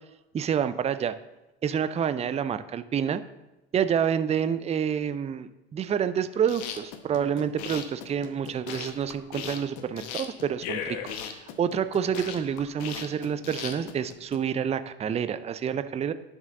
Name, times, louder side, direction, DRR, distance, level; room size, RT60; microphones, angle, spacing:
voice 1, 0.3-1.1 1.6-3.2 3.7-11.0 11.3-16.1, right 8 dB, 20° right, 13 dB, 0.5 m, -28 dB
sound 1, 6.3-14.4, left 8 dB, 55° left, 1.1 m, -37 dB
10.5 x 6.2 x 3.7 m, 0.99 s
hypercardioid pair, 70°, 33 cm